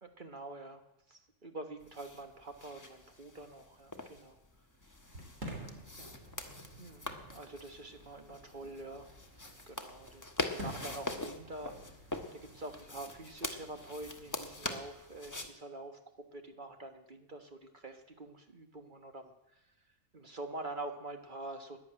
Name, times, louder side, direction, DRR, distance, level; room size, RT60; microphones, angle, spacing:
voice 1, 0.0-0.8 1.1-4.4 6.0-6.2 6.8-9.1 9.7-11.8 12.3-16.0 16.3-19.6 20.1-21.8, right 2 dB, 40° right, 5 dB, 1.5 m, -46 dB
sound 1, 1.8-15.5, left 2 dB, 15° left, 1.1 m, -44 dB
Fireworks, 5.0-14.9, right 1 dB, 70° right, 3.3 m, -51 dB
11.5 x 10.5 x 8.8 m, 0.86 s
omnidirectional pair, 1.4 m